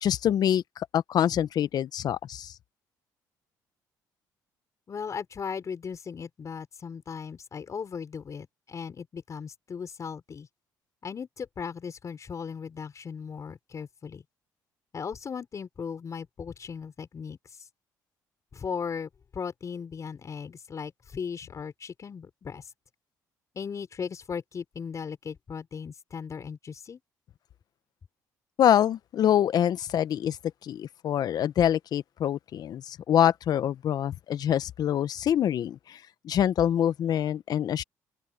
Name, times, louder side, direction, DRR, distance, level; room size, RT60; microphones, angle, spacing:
voice 1, 0.0-2.5 28.6-30.4 30.6-36.0 36.2-37.8, left 10 dB, 60° left, 1.0 m, -25 dB
voice 2, 4.9-10.5 11.0-14.2 14.9-17.7 18.5-22.7 23.6-27.0, left 6 dB, 45° left, 5.3 m, -37 dB
open air
supercardioid pair, 70°, 8 cm